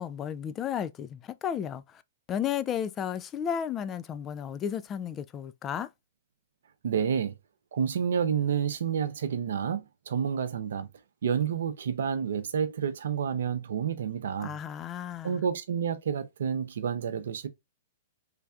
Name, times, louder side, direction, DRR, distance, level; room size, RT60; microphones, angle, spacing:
voice 1, 0.0-2.0 2.3-5.9 14.4-15.4, left 9 dB, 25° left, 0.3 m, -33 dB
voice 2, 6.8-7.3 7.7-10.9 11.2-14.6 15.2-17.5, right 7 dB, 70° right, 0.6 m, -29 dB
3.3 x 3.2 x 2.3 m
hypercardioid pair, 115°, 0 cm